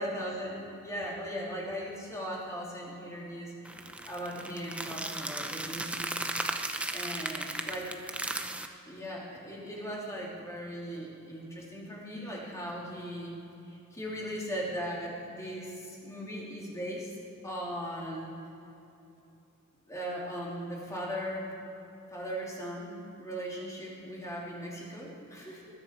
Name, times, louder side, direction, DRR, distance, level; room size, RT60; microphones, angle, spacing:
voice 1, 0.0-3.5 4.1-6.1 6.9-7.9 8.9-13.4 13.7-17.1 17.4-18.3 19.9-21.5 22.1-25.7, equal, 15° left, -4 dB, 3.0 m, -38 dB
sound 1, 3.7-8.7, right 2 dB, 5° right, 0.6 m, -36 dB
20.5 x 10.5 x 4.6 m, 2.9 s
head